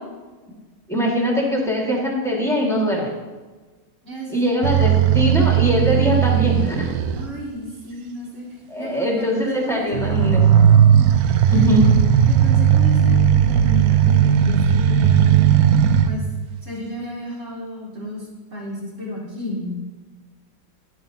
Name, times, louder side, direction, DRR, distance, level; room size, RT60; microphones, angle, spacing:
voice 1, 0.9-3.1 4.3-6.9 8.7-10.6 11.5-11.9, equal, ahead, -2 dB, 1.6 m, -21 dB
voice 2, 4.0-4.5 7.1-10.2 11.5-11.6 12.3-15.5 16.0-16.2 16.6-19.7, left 1 dB, 45° right, -5 dB, 2.7 m, -33 dB
sound 1, 4.6-7.3 9.9-16.1, right 9 dB, 70° right, 0.9 m, -16 dB
11.0 x 9.6 x 2.7 m, 1.3 s
omnidirectional pair, 1.9 m